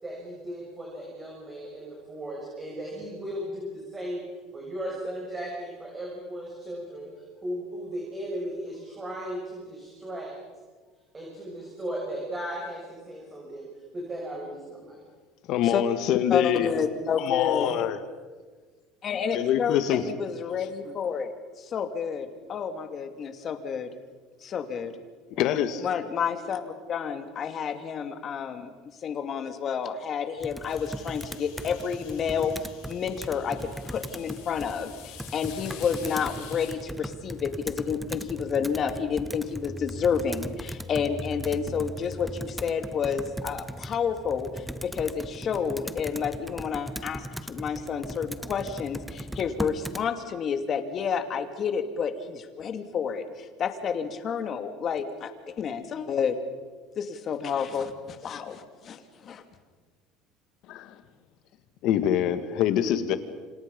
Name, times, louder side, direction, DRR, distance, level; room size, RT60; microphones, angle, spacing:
voice 1, 0.0-4.2 4.5-7.1 7.4-10.4 11.1-13.7 13.9-15.0, equal, 20° right, -2 dB, 6.9 m, -36 dB
voice 2, 15.5-16.7 17.2-18.0 19.3-20.0 25.3-25.8 60.7-61.0 61.8-63.2, left 10 dB, 60° left, 10 dB, 2.1 m, -25 dB
voice 3, 16.3-17.7 19.0-23.9 24.4-24.9 25.8-28.7 29.0-56.4 57.0-59.4, left 6 dB, 35° left, 8 dB, 2.6 m, -30 dB
Computer keyboard, 30.4-50.1, equal, ahead, 0.9 m, -39 dB
sound 1, 30.7-36.8, left 10 dB, 75° left, 7.1 m, -48 dB
30.0 x 27.0 x 5.5 m, 1.4 s
cardioid pair, 135°, 0 cm